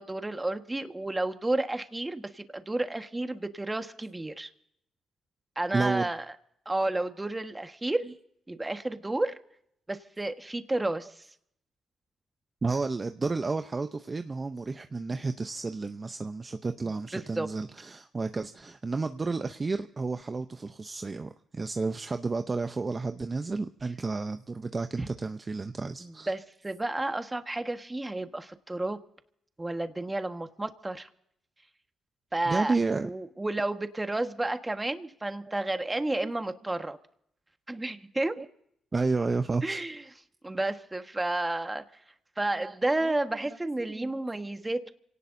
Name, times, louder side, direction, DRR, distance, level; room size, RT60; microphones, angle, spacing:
voice 1, 0.0-4.5 5.5-6.2 6.6-8.1 8.5-9.4 9.9-11.2 17.1-17.5 25.0-25.1 26.0-29.0 29.6-31.1 32.3-32.7 33.0-37.0 37.7-38.4 39.6-40.0 40.4-41.8 42.4-44.9, right 2 dB, 20° right, 7 dB, 1.5 m, -31 dB
voice 2, 5.7-6.1 12.6-26.3 32.5-33.1 35.8-35.9 36.2-36.3 38.4-38.5 38.9-39.8 42.6-42.8 43.0-43.2 44.0-44.1, right 3 dB, 35° right, 8 dB, 0.7 m, -31 dB
27.0 x 18.0 x 2.7 m, 0.74 s
cardioid pair, 65°, 0 cm